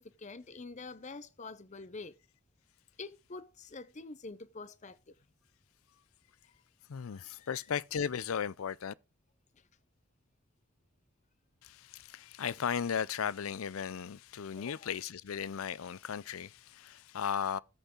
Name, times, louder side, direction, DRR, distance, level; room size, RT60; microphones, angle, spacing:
voice 1, 0.0-2.1 3.0-5.1 7.1-7.6 14.6-14.9, left 3 dB, 35° left, 0.7 m, -46 dB
voice 2, 6.9-8.9 11.6-17.6, left 7 dB, 80° left, 0.5 m, -36 dB
13.5 x 8.1 x 3.8 m
head